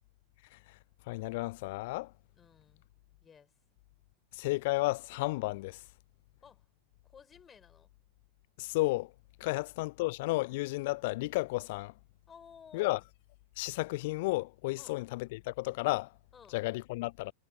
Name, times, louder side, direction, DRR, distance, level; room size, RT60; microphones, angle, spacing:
voice 1, 1.1-2.1 4.3-5.8 8.6-9.1 9.4-11.9 12.7-13.0 13.6-16.1 16.5-17.3, left 21 dB, 50° left, 0.4 m, -33 dB
voice 2, 2.3-2.8 3.2-3.5 6.4-6.7 7.0-7.9 9.4-9.6 12.3-13.0 14.8-15.0 16.3-16.6, left 7 dB, 20° left, 4.8 m, -56 dB
figure-of-eight pair, 90°, 0 cm